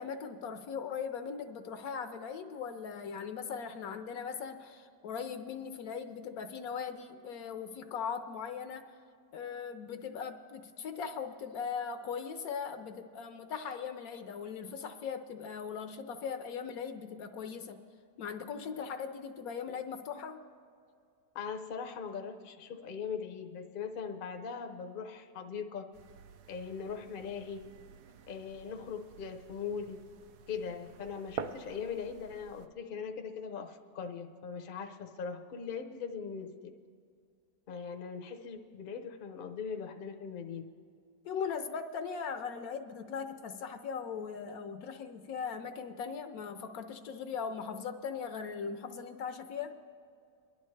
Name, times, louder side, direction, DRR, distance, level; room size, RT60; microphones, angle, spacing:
voice 1, 0.0-8.9 9.3-17.8 18.2-20.4 41.2-49.8, left 6 dB, 70° left, 8 dB, 1.0 m, -39 dB
voice 2, 21.3-25.8 26.5-27.7 28.3-30.0 30.5-36.7 37.7-40.6, left 6 dB, 50° left, 5 dB, 0.6 m, -40 dB
sound 1, 25.9-32.7, right 7 dB, 75° right, 1.2 m, -48 dB
23.5 x 11.0 x 3.2 m, 2.3 s
omnidirectional pair, 1.8 m